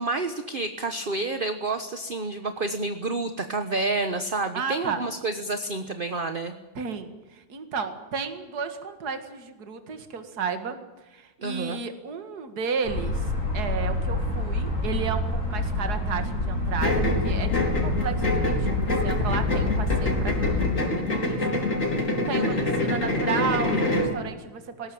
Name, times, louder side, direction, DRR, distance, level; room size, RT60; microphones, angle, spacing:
voice 1, 0.0-6.5 11.4-11.8 22.3-22.6, right 3 dB, 30° right, 8 dB, 1.1 m, -29 dB
voice 2, 4.5-5.0 6.7-10.8 11.0-21.5 22.0-24.9, right 6 dB, 50° right, 8 dB, 2.4 m, -33 dB
sound 1, 12.8-20.7, left 2 dB, 75° left, 7.2 m, -27 dB
sound 2, 16.8-24.2, left 1 dB, 35° left, 4.7 m, -26 dB
20.5 x 18.0 x 8.8 m, 1.1 s
omnidirectional pair, 2.2 m